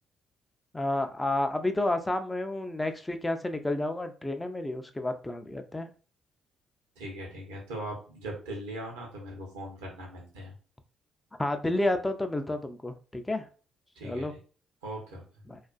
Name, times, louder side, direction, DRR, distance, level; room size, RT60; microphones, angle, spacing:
voice 1, 0.7-5.9 11.4-13.5 14.0-14.3 15.5-15.6, left 1 dB, 15° left, 7 dB, 0.4 m, -30 dB
voice 2, 7.0-10.5 14.0-14.4 14.8-15.2, right 1 dB, 80° right, 0 dB, 0.7 m, -40 dB
2.4 x 2.4 x 2.3 m, 0.38 s
hypercardioid pair, 45°, 0 cm